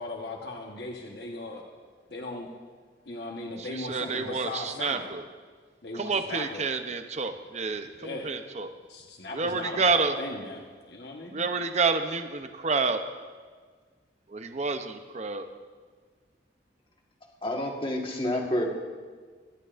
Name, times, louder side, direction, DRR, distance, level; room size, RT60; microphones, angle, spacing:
voice 1, 0.0-1.6 2.1-2.5 3.1-5.1 5.8-6.7 8.0-8.3 8.9-11.5, left 2 dB, 60° left, 0 dB, 1.2 m, -37 dB
voice 2, 3.6-5.2 5.9-8.7 9.3-10.1 11.3-13.0 14.3-15.5, right 4 dB, 40° right, 7 dB, 0.7 m, -29 dB
voice 3, 17.4-18.6, left 1 dB, 30° left, 1 dB, 1.5 m, -28 dB
23.0 x 11.0 x 2.6 m, 1.5 s
head